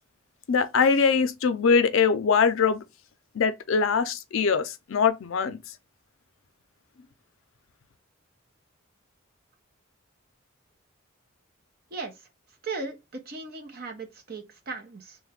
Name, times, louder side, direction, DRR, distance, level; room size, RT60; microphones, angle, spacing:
voice 1, 0.5-2.8 3.3-5.6, left 5 dB, 70° left, 0.5 m, -22 dB
voice 2, 12.6-15.2, right 3 dB, 45° right, 0.8 m, -37 dB
3.2 x 2.2 x 3.5 m
head